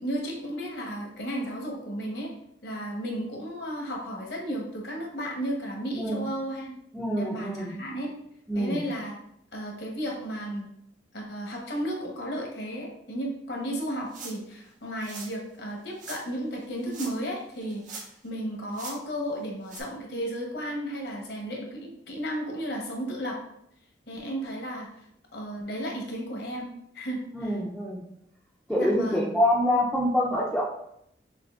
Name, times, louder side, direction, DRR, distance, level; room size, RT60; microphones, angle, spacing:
voice 1, 0.0-2.3 2.6-6.7 7.2-8.1 8.5-9.1 9.5-10.7 11.1-23.4 24.1-24.9 25.3-26.7 26.9-27.5 28.8-29.3, equal, 70° left, 0 dB, 1.0 m, -34 dB
voice 2, 6.9-7.8 8.5-8.8 27.3-28.0 28.7-30.6, left 1 dB, ahead, -7 dB, 0.5 m, -26 dB
sound 1, 14.1-14.5 15.0-15.3 16.0-16.2 16.8-17.3 17.6-18.3 18.7-19.0 19.7-19.8, right 4 dB, 45° right, 0.7 m, -41 dB
6.0 x 2.7 x 2.4 m, 0.75 s
head